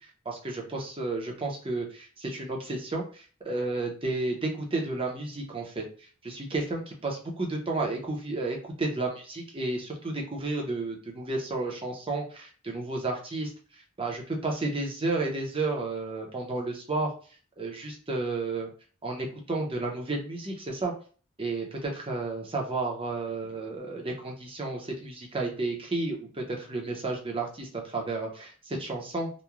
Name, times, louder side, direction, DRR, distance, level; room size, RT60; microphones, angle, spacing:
voice 1, 0.3-5.8 6.2-13.5 14.0-17.1 17.6-18.7 19.0-20.9 21.4-29.3, right 2 dB, 25° right, 1 dB, 0.7 m, -32 dB
3.0 x 2.2 x 2.3 m, 0.40 s
head